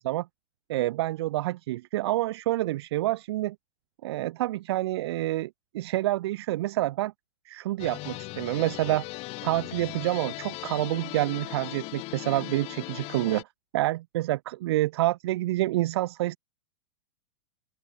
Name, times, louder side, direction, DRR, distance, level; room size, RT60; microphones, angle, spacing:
voice 1, 0.7-3.6 4.0-7.1 7.5-9.0 9.4-13.5 13.7-16.4, right 16 dB, 60° right, 0.7 m, -28 dB
sound 1, 7.8-13.4, left 22 dB, 40° left, 2.3 m, -38 dB
open air
hypercardioid pair, 105°, 15 cm